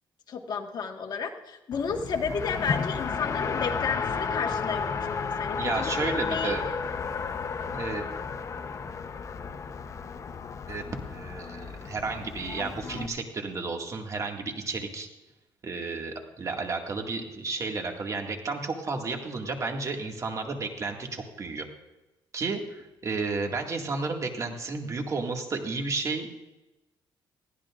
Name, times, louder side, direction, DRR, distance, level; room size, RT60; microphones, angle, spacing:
voice 1, 0.3-6.6, left 6 dB, 55° left, 3 dB, 1.6 m, -32 dB
Race car auto racing, 1.7-13.1, left 5 dB, 40° left, 0.8 m, -33 dB
voice 2, 5.6-6.6 7.7-8.1 10.7-15.1 15.6-21.7 22.3-26.3, right 3 dB, 40° right, 3 dB, 2.0 m, -32 dB
20.5 x 15.0 x 2.5 m, 1.0 s
cardioid pair, 115°, 9 cm